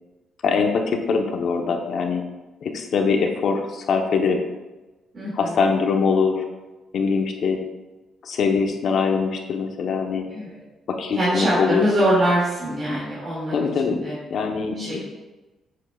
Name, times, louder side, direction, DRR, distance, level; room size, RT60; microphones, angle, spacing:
voice 1, 0.4-2.2 2.6-4.4 5.4-6.4 6.9-7.6 8.2-10.3 10.9-11.8 13.5-14.0 14.3-15.0, left 5 dB, 60° left, 3 dB, 1.0 m, -22 dB
voice 2, 5.1-5.6 10.3-10.6 11.1-14.2 14.8-15.0, right 1 dB, 40° right, -8 dB, 2.4 m, -23 dB
7.4 x 7.3 x 2.4 m, 1.1 s
cardioid pair, 90°, 0 cm